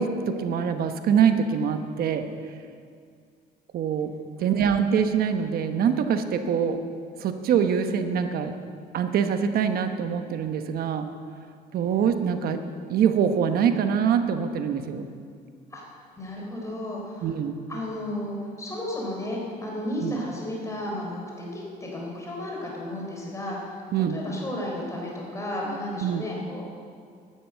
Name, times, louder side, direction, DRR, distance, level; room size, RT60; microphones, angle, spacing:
voice 1, 0.0-2.2 3.7-4.1 4.4-6.8 7.2-8.5 8.9-11.1 11.7-12.6 12.9-15.1 17.2-17.6 20.0-20.2 23.9-24.2 26.0-26.3, right 7 dB, 65° right, 7 dB, 1.1 m, -24 dB
voice 2, 16.1-17.4 17.7-23.7 24.0-26.6, left 1 dB, 15° left, -2 dB, 3.9 m, -33 dB
12.0 x 9.9 x 7.9 m, 2.2 s
cardioid pair, 110°, 17 cm